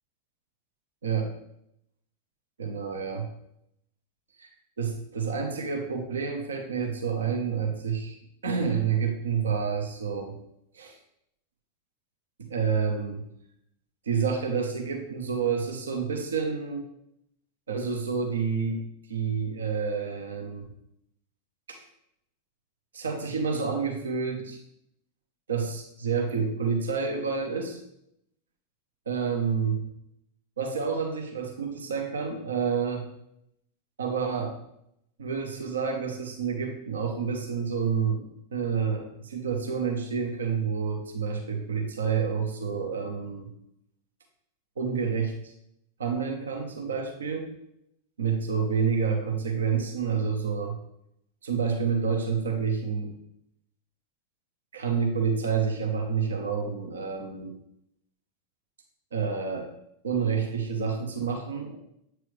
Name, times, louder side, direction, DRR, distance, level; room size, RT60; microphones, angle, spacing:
voice 1, 2.6-3.3 4.8-8.2 8.4-10.3 10.7-11.0 12.4-13.3 14.1-16.8 17.7-20.6 21.7-21.8 22.9-24.6 25.5-27.8 29.1-29.8 30.6-33.0 34.0-34.6 35.2-38.2 38.5-43.5 44.8-45.5 46.0-47.5 48.2-50.8 51.4-53.2 54.7-57.5 59.1-59.7 60.0-61.7, right 6 dB, 70° right, 3 dB, 0.9 m, -29 dB
8.1 x 4.6 x 3.2 m, 0.77 s
figure-of-eight pair, 90°, 0 cm